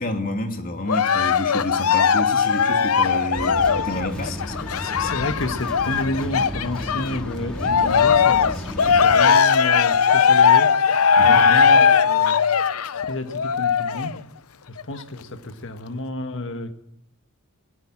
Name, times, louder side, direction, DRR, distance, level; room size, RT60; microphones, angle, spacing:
voice 1, 0.0-4.3 11.2-11.5, left 1 dB, 40° left, 2.7 m, -29 dB
Cheering, 0.9-7.2 7.6-14.2 14.8-14.9, left 6 dB, 85° left, 0.7 m, -19 dB
sound 1, 3.3-9.1, equal, 5° left, 2.5 m, -33 dB
voice 2, 4.2-10.7 11.2-12.4 12.9-14.1 14.7-16.7, left 1 dB, 60° left, 1.6 m, -31 dB
23.0 x 17.0 x 7.4 m
head